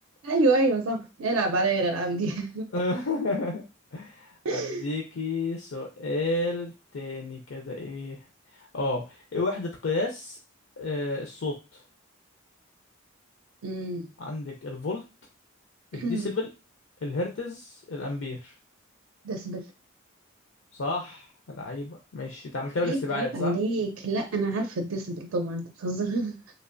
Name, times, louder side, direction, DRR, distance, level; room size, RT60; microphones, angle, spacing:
voice 1, 0.2-2.7 4.4-4.9 13.6-14.1 15.9-16.3 19.2-19.6 22.8-26.4, right 2 dB, 75° right, 4 dB, 0.5 m, -27 dB
voice 2, 2.7-3.6 3.9-8.2 8.5-10.4 10.8-11.8 14.2-15.0 15.9-16.5 17.0-18.5 20.7-23.5, left 2 dB, 70° left, 1 dB, 0.5 m, -31 dB
3.2 x 2.5 x 2.5 m, 0.28 s
head